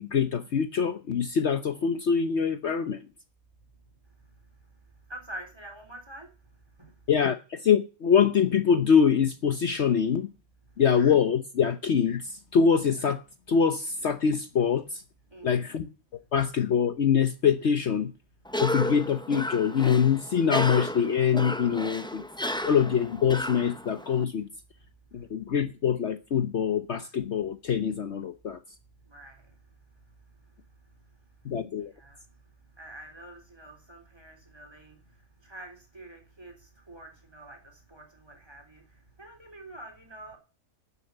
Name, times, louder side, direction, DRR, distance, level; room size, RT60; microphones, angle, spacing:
voice 1, 0.0-3.1 7.1-10.3 10.8-13.2 13.5-15.0 15.4-15.9 16.3-18.1 18.6-22.2 22.6-24.5 25.1-28.6 31.4-31.9, left 7 dB, 55° left, 1.1 m, -24 dB
voice 2, 5.1-6.3 6.8-7.0 15.3-15.6 29.0-29.5 31.8-32.2 32.8-40.4, right 1 dB, 20° right, 3.3 m, -46 dB
Cough, 18.4-24.2, left 1 dB, 5° left, 0.5 m, -33 dB
12.0 x 6.9 x 8.0 m
omnidirectional pair, 1.4 m